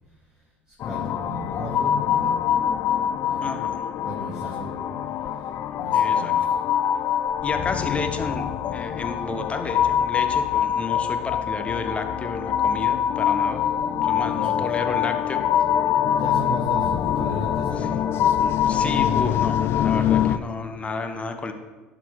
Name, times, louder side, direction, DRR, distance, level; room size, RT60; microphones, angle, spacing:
voice 1, 0.7-2.4 3.1-3.5 4.0-4.7 5.8-6.6 13.7-14.7 16.0-18.4 18.8-19.0, right 1 dB, 10° right, -7 dB, 2.4 m, -36 dB
sound 1, 0.8-20.4, left 9 dB, 45° left, 0.4 m, -24 dB
voice 2, 3.4-3.8 5.9-6.3 7.4-13.7 14.0-15.4 17.8-17.9 18.7-21.5, left 3 dB, 20° left, 6 dB, 0.8 m, -31 dB
11.0 x 4.1 x 4.7 m, 1.2 s
hypercardioid pair, 70°, 6 cm